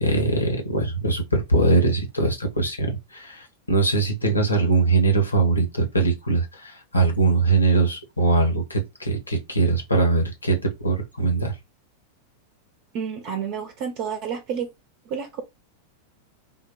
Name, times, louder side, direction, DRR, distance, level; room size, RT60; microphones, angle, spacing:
voice 1, 0.0-11.5, right 3 dB, 80° left, 1.3 m, -22 dB
voice 2, 12.9-14.7 15.1-15.4, right 7 dB, 45° right, 0.7 m, -30 dB
4.0 x 2.3 x 3.7 m
figure-of-eight pair, 90°, 0 cm